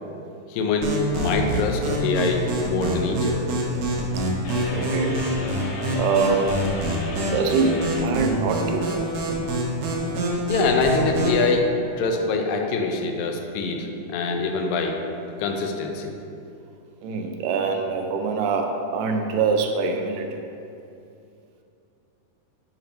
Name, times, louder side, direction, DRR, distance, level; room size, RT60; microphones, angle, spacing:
voice 1, 0.5-3.5 10.5-11.7 12.0-15.0 15.4-16.1, left 3 dB, 85° left, 3 dB, 2.4 m, -24 dB
sound 1, 0.8-11.4, equal, 65° right, 2.0 m, -26 dB
sound 2, 4.4-8.1, left 2 dB, 70° left, 2.0 m, -35 dB
voice 2, 4.7-5.2 6.0-6.5 7.3-8.9 17.0-20.4, right 5 dB, 85° right, 4 dB, 2.2 m, -24 dB
8.7 x 2.9 x 5.2 m, 2.7 s
omnidirectional pair, 3.9 m